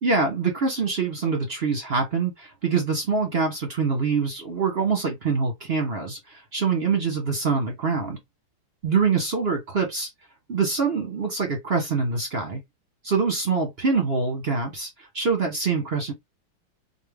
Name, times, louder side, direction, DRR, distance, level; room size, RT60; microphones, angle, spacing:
voice 1, 0.0-8.2 8.8-10.1 10.5-12.6 13.0-16.1, right 5 dB, 40° right, 0.9 m, -25 dB
4.5 x 2.6 x 3.4 m
omnidirectional pair, 2.3 m